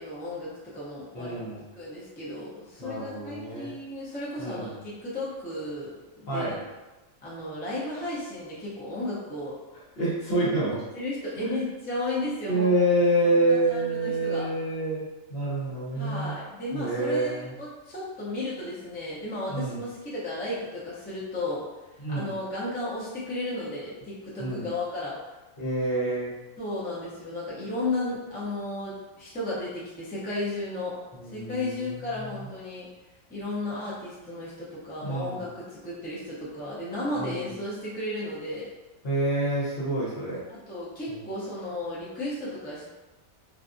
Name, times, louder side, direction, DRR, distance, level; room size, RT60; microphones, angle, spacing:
voice 1, 0.0-1.4 1.8-6.6 7.2-9.6 10.9-12.7 13.3-14.5 15.9-21.6 22.1-25.1 26.6-31.0 31.3-32.9 33.3-38.7 40.5-42.8, left 2 dB, 15° left, -9 dB, 0.3 m, -34 dB
voice 2, 1.1-1.7 2.8-3.7 4.4-4.7 6.3-6.6 10.0-10.8 12.5-15.0 15.3-16.3 16.7-17.5 19.5-19.8 22.0-22.3 24.4-24.7 25.6-26.4 31.1-32.4 35.0-35.4 37.2-37.5 39.0-40.4 41.1-41.2, right 1 dB, 50° left, -7 dB, 1.0 m, -27 dB
2.6 x 2.3 x 2.5 m, 1.1 s
omnidirectional pair, 1.4 m